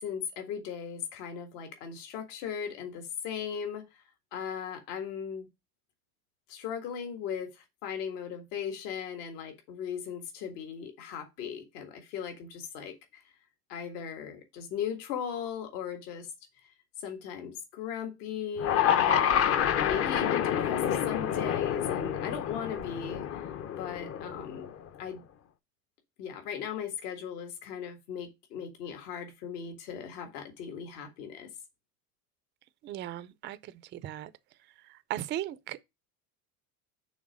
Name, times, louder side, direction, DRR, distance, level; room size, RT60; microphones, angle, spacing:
voice 1, 0.0-4.0 4.3-5.5 6.5-13.3 13.7-16.3 16.6-19.6 19.8-23.5 23.8-24.7 25.0-25.2 26.2-31.5, left 8 dB, 65° left, 1.8 m, -38 dB
sound 1, 18.6-24.8, left 9 dB, 30° left, 0.6 m, -28 dB
voice 2, 32.9-33.6 34.0-34.3 35.1-35.5, right 12 dB, 25° right, 0.4 m, -35 dB
6.3 x 3.4 x 6.0 m
supercardioid pair, 105°, 49 cm